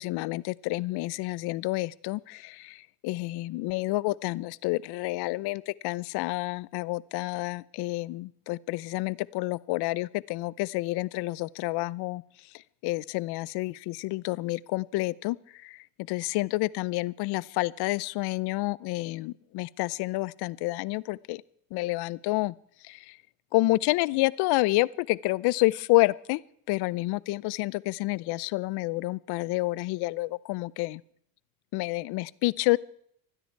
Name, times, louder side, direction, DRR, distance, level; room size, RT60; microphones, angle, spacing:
voice 1, 0.0-12.2 12.8-21.4 21.7-22.5 22.8-23.2 23.5-26.4 26.7-31.0 31.7-32.8, left 20 dB, 55° left, 21 dB, 0.7 m, -29 dB
26.0 x 10.0 x 4.6 m, 0.67 s
supercardioid pair, 110°, 48 cm